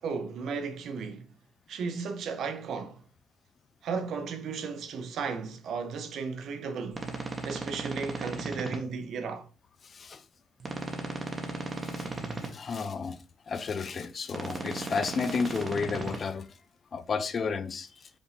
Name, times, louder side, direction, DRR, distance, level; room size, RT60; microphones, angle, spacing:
voice 1, 0.0-1.3 1.7-3.0 3.8-9.5, right 5 dB, 65° right, 0.7 m, -35 dB
sound 1, 6.9-8.8 10.6-12.5 14.3-16.2, right 3 dB, 30° right, 0.9 m, -36 dB
voice 2, 9.8-10.2 11.8-12.1 12.4-16.6 16.9-18.1, left 5 dB, 40° left, 0.4 m, -32 dB
5.0 x 2.6 x 3.4 m
cardioid pair, 135°, 0 cm